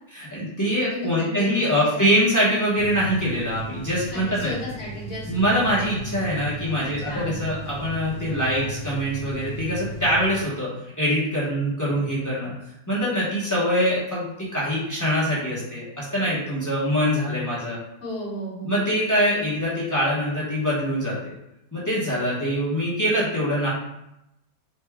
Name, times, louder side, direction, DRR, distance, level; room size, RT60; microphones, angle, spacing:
voice 1, 0.1-4.5 5.3-10.7 11.0-12.5 12.9-17.8 18.6-21.3 21.7-23.7, equal, 25° left, -8 dB, 0.4 m, -24 dB
voice 2, 0.8-2.0 4.1-5.3 6.8-7.3 18.0-18.7, left 1 dB, 45° left, -6 dB, 1.4 m, -34 dB
sound 1, 2.8-10.4, right 2 dB, 90° left, 1.3 m, -36 dB
4.1 x 2.2 x 3.4 m, 0.85 s
omnidirectional pair, 1.9 m